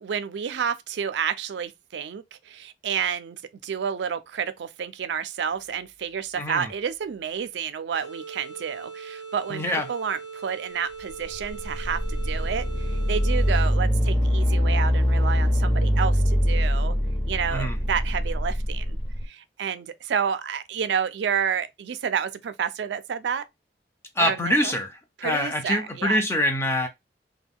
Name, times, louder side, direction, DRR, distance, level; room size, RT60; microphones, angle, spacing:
voice 1, 0.0-9.6 9.9-16.9 17.3-23.5 24.2-24.7 25.2-26.2, right 7 dB, 85° right, 0.4 m, -30 dB
voice 2, 6.4-6.7 9.5-9.9 17.5-17.8 24.2-26.9, left 1 dB, 15° left, 0.5 m, -25 dB
sound 1, 7.9-13.9, right 5 dB, 85° left, 1.3 m, -40 dB
sound 2, 11.2-19.2, equal, 35° left, 0.8 m, -23 dB
2.3 x 2.2 x 3.5 m
head